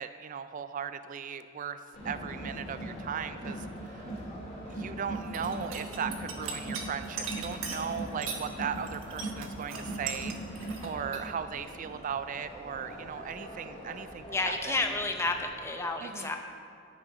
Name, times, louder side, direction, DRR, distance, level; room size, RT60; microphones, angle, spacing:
voice 1, 0.0-1.8 2.0-4.1 4.7-14.8 16.0-16.3, right 7 dB, 40° right, 11 dB, 0.3 m, -37 dB
Crowd, 1.9-15.5, right 1 dB, 30° left, 2.4 m, -41 dB
sound 1, 5.1-8.5 8.8-11.3, right 5 dB, 80° right, 1.1 m, -39 dB
voice 2, 14.3-16.4, left 3 dB, 15° left, 4 dB, 0.6 m, -31 dB
10.5 x 6.2 x 5.1 m, 2.6 s
head